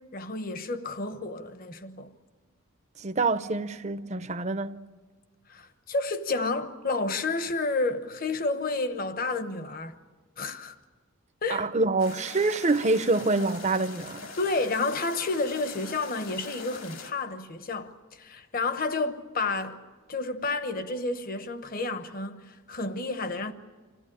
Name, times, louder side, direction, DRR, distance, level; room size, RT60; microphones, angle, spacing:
voice 1, 0.0-2.1 5.5-10.0 10.4-10.7 11.4-11.7 14.4-19.8 20.1-23.5, left 3 dB, 40° left, 1.0 m, -30 dB
voice 2, 3.0-4.8 11.5-14.3, right 3 dB, 30° right, 0.6 m, -26 dB
sound 1, 12.0-17.1, left 4 dB, 70° left, 2.6 m, -43 dB
26.0 x 15.5 x 10.0 m
head